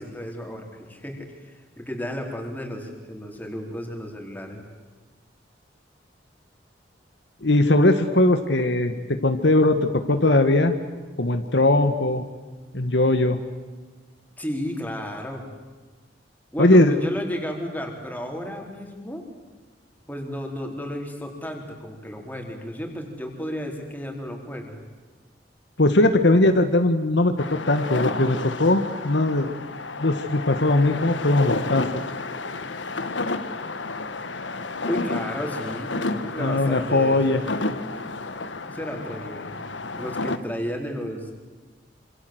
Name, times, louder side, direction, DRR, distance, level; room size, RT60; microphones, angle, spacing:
voice 1, 0.0-4.6 14.4-15.5 16.5-19.2 20.1-24.8 34.8-37.4 38.7-39.5 39.9-41.3, equal, 10° left, 2 dB, 4.4 m, -33 dB
voice 2, 7.4-10.7 11.2-12.2 12.7-13.4 16.6-16.9 25.8-29.5 30.0-31.9 36.4-37.4, left 2 dB, 65° left, 8 dB, 1.6 m, -20 dB
sound 1, 27.4-40.4, left 3 dB, 85° left, 1.6 m, -31 dB
27.0 x 27.0 x 8.0 m, 1.3 s
head